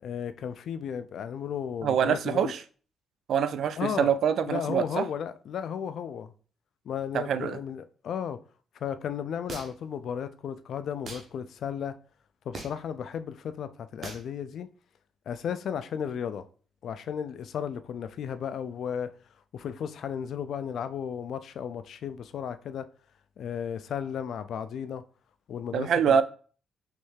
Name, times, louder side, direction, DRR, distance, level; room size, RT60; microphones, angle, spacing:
voice 1, 0.0-2.5 3.8-4.1 4.5-6.3 6.9-8.4 8.8-12.0 12.5-14.7 15.3-16.4 16.8-19.1 19.5-22.9 23.4-25.0 25.5-26.2, left 8 dB, 65° left, 0.3 m, -34 dB
voice 2, 1.8-2.6 3.3-5.1 7.1-7.6 25.7-26.2, right 8 dB, 65° right, 0.3 m, -25 dB
sound 1, 9.5-9.9 11.0-11.3 12.5-12.9 14.0-14.3, right 3 dB, 45° right, 0.9 m, -40 dB
3.2 x 3.1 x 3.2 m
cardioid pair, 90°, 0 cm